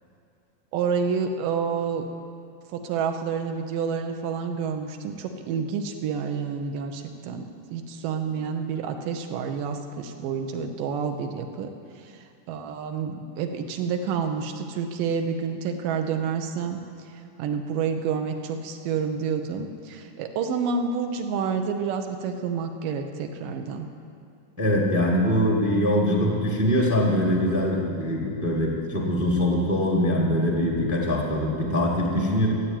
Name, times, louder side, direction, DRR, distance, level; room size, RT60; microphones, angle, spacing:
voice 1, 0.7-2.0 2.7-11.7 12.0-16.8 17.4-23.9, right 6 dB, 75° right, 5 dB, 2.5 m, -29 dB
voice 2, 24.6-32.5, left 1 dB, 15° right, -1 dB, 0.5 m, -23 dB
14.0 x 8.2 x 8.9 m, 2.5 s
omnidirectional pair, 4.1 m